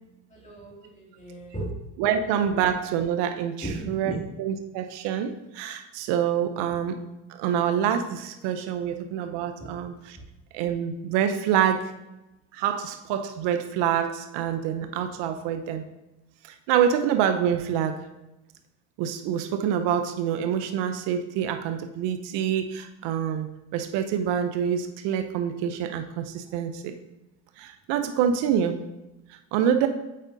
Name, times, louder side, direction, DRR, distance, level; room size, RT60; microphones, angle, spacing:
voice 1, 0.3-1.7 3.6-4.2 9.6-9.7, right 1 dB, 15° left, -3 dB, 2.4 m, -36 dB
voice 2, 2.0-7.0 7.4-9.9 10.5-11.9 12.5-15.8 16.7-18.0 19.0-26.9 27.6-28.8 29.5-29.9, right 9 dB, 85° right, 8 dB, 0.7 m, -26 dB
8.6 x 5.0 x 2.7 m, 0.96 s
cardioid pair, 95°, 41 cm